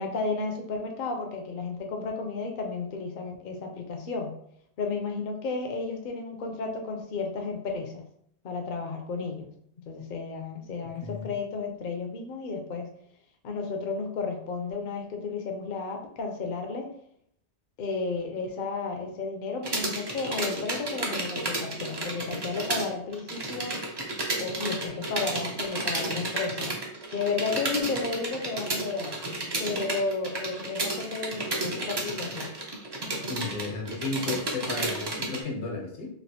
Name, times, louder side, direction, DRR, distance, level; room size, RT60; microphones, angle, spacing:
voice 1, 0.0-4.4 4.8-8.1 8.4-9.5 9.9-12.9 13.4-16.9 17.8-23.8 24.4-26.8 27.1-29.1 29.6-32.5, left 4 dB, 60° left, 3 dB, 0.6 m, -33 dB
sound 1, 19.6-22.9 23.1-35.4, right 2 dB, 35° right, 0.4 m, -32 dB
voice 2, 33.3-36.1, left 3 dB, 80° left, -1 dB, 1.2 m, -34 dB
3.2 x 2.4 x 2.7 m, 0.68 s
omnidirectional pair, 1.2 m